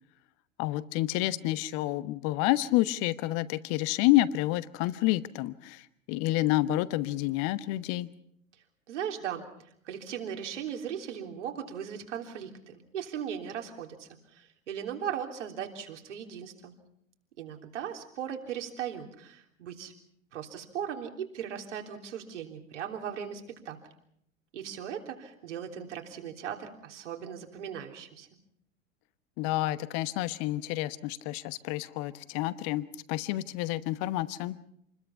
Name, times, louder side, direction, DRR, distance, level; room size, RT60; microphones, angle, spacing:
voice 1, 0.6-5.8 6.1-8.1 29.4-34.6, left 16 dB, 40° left, 15 dB, 1.2 m, -29 dB
voice 2, 8.9-9.5 9.9-16.7 17.4-19.9 20.3-23.8 24.5-28.3, right 8 dB, 65° right, 3 dB, 3.6 m, -38 dB
28.0 x 21.0 x 5.8 m, 0.73 s
figure-of-eight pair, 85°, 39 cm